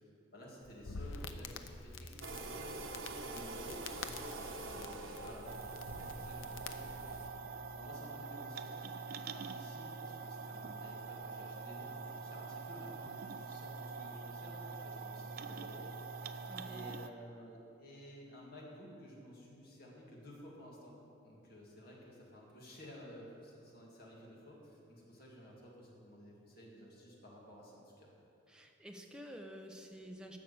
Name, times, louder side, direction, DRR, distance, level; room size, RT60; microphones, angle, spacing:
voice 1, 0.3-7.4 7.8-8.7 9.3-16.3 16.6-21.0 21.2-28.1, equal, 50° left, -3 dB, 2.3 m, -54 dB
Crackle, 0.6-7.3, left 3 dB, 85° left, 0.6 m, -48 dB
sound 1, 2.2-7.3, right 2 dB, 85° right, 1.1 m, -46 dB
sound 2, 5.5-17.1, right 4 dB, 50° right, 0.4 m, -45 dB
voice 2, 16.4-16.8 28.5-30.4, equal, 5° right, 2 dB, 0.8 m, -50 dB
11.5 x 6.6 x 7.1 m, 2.7 s
head